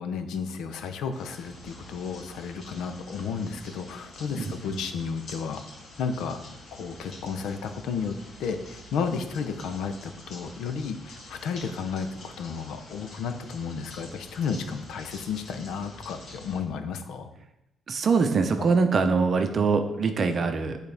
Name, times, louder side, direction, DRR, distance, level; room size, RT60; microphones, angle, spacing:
voice 1, 0.0-5.6 6.0-6.4 6.8-17.3 18.6-18.7, left 6 dB, 85° left, 8 dB, 0.6 m, -33 dB
sound 1, 1.1-16.6, left 1 dB, 55° left, 2.5 m, -47 dB
voice 2, 17.9-20.8, right 4 dB, 40° right, 7 dB, 0.7 m, -23 dB
10.5 x 4.1 x 3.4 m, 0.89 s
cardioid pair, 135°, 0 cm